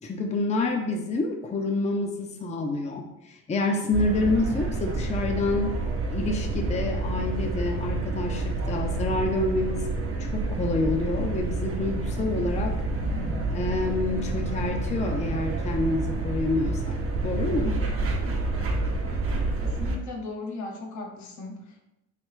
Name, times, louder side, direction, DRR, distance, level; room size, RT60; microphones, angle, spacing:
voice 1, 0.0-5.8 6.1-9.8 10.2-17.0 17.2-17.8, left 2 dB, 25° left, 3 dB, 0.5 m, -28 dB
sound 1, 3.9-20.0, right 2 dB, 45° right, 0.8 m, -29 dB
voice 2, 19.6-21.9, left 3 dB, 70° left, 2 dB, 0.8 m, -37 dB
3.5 x 3.3 x 3.0 m, 0.90 s
cardioid pair, 90°, 30 cm